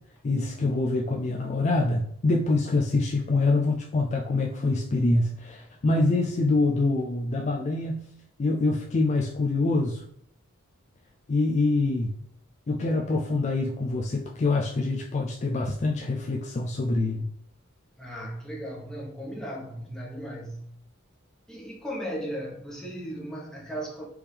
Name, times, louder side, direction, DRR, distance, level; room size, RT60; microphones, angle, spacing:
voice 1, 0.2-8.1 8.4-10.0 11.3-12.2 12.7-17.3, left 2 dB, 35° left, 0 dB, 0.3 m, -25 dB
voice 2, 18.0-20.6 21.5-24.0, equal, 5° left, -4 dB, 1.1 m, -36 dB
4.6 x 3.5 x 3.4 m, 0.69 s
head